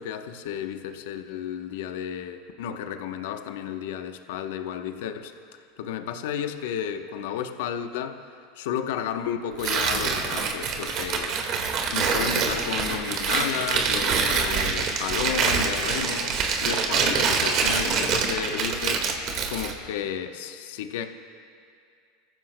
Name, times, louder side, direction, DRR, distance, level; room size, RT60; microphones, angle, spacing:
voice 1, 0.0-5.3 5.8-8.2 8.6-11.4 11.9-19.1 19.5-21.1, left 8 dB, 75° left, 7 dB, 0.9 m, -32 dB
Tearing, 9.6-19.8, right 5 dB, 50° right, 1.7 m, -25 dB
28.0 x 15.0 x 2.2 m, 2.3 s
hypercardioid pair, 100°, 0 cm